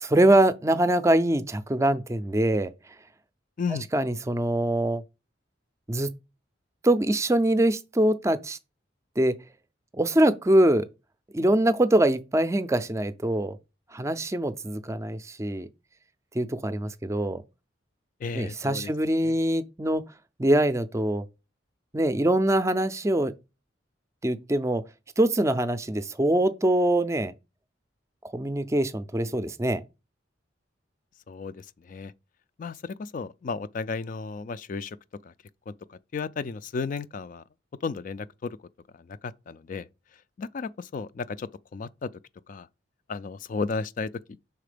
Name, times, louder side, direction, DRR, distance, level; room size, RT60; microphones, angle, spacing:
voice 1, 0.0-2.7 3.9-5.0 5.9-6.1 6.8-8.6 9.2-9.3 9.9-10.8 11.3-13.6 13.9-15.7 16.3-17.4 18.3-20.0 20.4-21.2 21.9-23.3 24.2-24.8 25.2-27.3 28.3-29.8, right 1 dB, 15° right, 0.4 m, -23 dB
voice 2, 18.2-19.4 31.3-32.1 32.6-35.0 35.2-35.3 35.7-37.4 37.8-38.6 38.9-39.9 40.4-42.1 42.5-42.7 43.1-44.1, left 4 dB, 45° left, 0.3 m, -34 dB
5.7 x 4.1 x 5.0 m
head